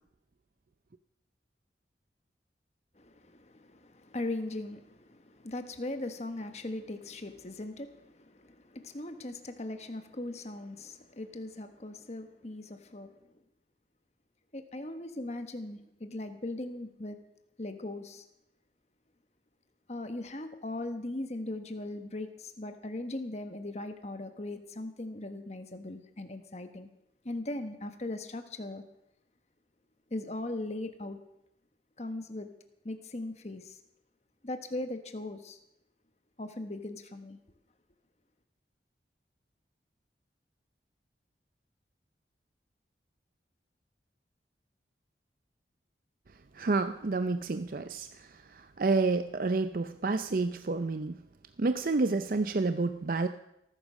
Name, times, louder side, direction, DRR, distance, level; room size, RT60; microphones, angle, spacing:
voice 1, 3.0-13.4 14.5-17.2 17.6-18.2 19.9-26.9 27.2-28.8 30.1-31.2 32.0-32.5 32.8-33.8 34.4-35.6 36.4-37.4, left 2 dB, 35° left, 8 dB, 1.2 m, -39 dB
voice 2, 46.5-51.2 51.6-53.3, right 3 dB, 50° right, 10 dB, 0.5 m, -29 dB
18.5 x 9.9 x 6.4 m, 0.84 s
head